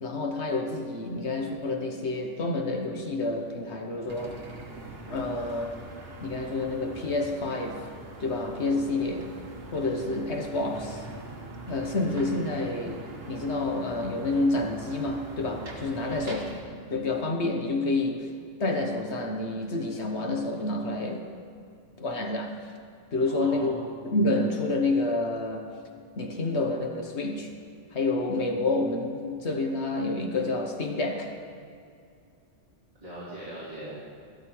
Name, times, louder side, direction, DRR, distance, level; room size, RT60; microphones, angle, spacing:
voice 1, 0.0-4.4 5.1-5.7 6.2-7.8 8.2-9.3 9.7-11.0 11.7-16.5 16.9-18.3 18.6-21.3 22.0-22.6 23.1-23.7 24.0-25.8 26.2-27.5 27.9-31.3, left 2 dB, 70° left, 3 dB, 1.4 m, -28 dB
sound 1, 4.1-16.6, right 2 dB, 60° right, 1.5 m, -43 dB
voice 2, 15.9-16.4 23.3-24.0 33.0-34.0, right 1 dB, 30° right, -9 dB, 2.9 m, -40 dB
13.5 x 12.0 x 4.6 m, 2.3 s
omnidirectional pair, 1.2 m